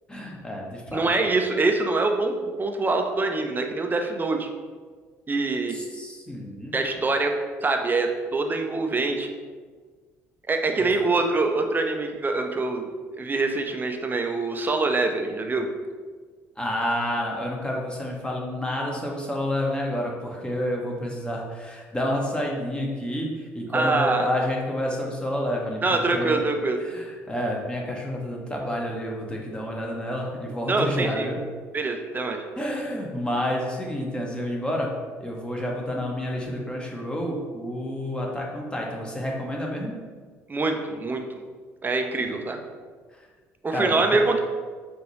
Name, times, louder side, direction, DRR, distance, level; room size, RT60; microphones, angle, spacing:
voice 1, 0.1-1.3 5.7-6.8 16.6-26.4 26.8-31.4 32.6-34.9 35.2-40.0 42.2-42.3 43.7-44.2, left 1 dB, 10° left, -1 dB, 1.0 m, -29 dB
voice 2, 0.9-4.5 5.3-5.7 6.7-7.3 7.6-9.3 10.5-12.9 13.2-15.7 23.7-24.3 25.8-26.8 30.7-31.3 31.7-32.4 40.5-41.2 41.8-42.6 43.6-44.4, right 3 dB, 25° right, 4 dB, 0.6 m, -24 dB
4.7 x 2.6 x 3.1 m, 1.5 s
hypercardioid pair, 55°, 8 cm